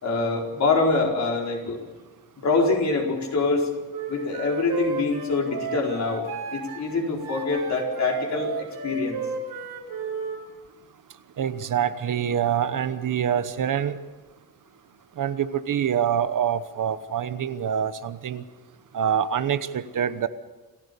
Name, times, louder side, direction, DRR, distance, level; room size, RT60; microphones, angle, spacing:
voice 1, 0.0-1.8 2.4-3.7 4.1-9.2, left 3 dB, 50° left, 0 dB, 4.6 m, -25 dB
Wind instrument woodwind instrument, 3.9-10.4, right 5 dB, 85° right, 5.0 m, -34 dB
voice 2, 11.4-14.0 15.2-18.4 18.9-20.3, right 9 dB, 60° right, 12 dB, 1.1 m, -25 dB
28.0 x 15.0 x 6.9 m, 1.2 s
cardioid pair, 130°, 36 cm